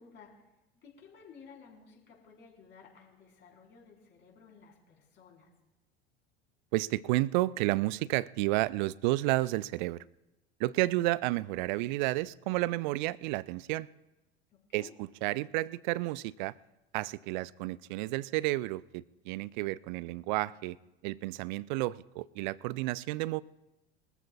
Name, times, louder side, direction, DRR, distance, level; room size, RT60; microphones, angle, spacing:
voice 1, 0.0-5.5 14.5-15.0, left 5 dB, 35° left, -1 dB, 4.4 m, -56 dB
voice 2, 6.7-10.0 10.6-13.9 14.7-16.5 16.9-20.8 21.0-23.4, right 19 dB, 50° right, 22 dB, 0.4 m, -31 dB
24.0 x 14.0 x 2.4 m, 0.99 s
figure-of-eight pair, 75°, 32 cm